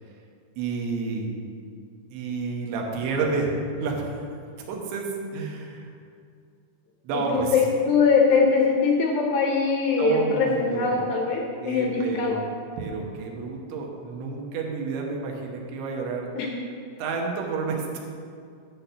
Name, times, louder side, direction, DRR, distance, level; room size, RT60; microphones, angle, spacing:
voice 1, 0.6-1.4 2.1-3.5 3.8-4.1 4.7-5.9 7.0-7.5 10.0-11.0 11.6-12.4 12.8-16.3 17.0-18.0, right 4 dB, 80° right, 0 dB, 3.4 m, -29 dB
voice 2, 7.1-12.4 16.4-16.5, left 5 dB, 80° left, 0 dB, 2.1 m, -22 dB
11.5 x 4.2 x 6.7 m, 2.3 s
omnidirectional pair, 5.2 m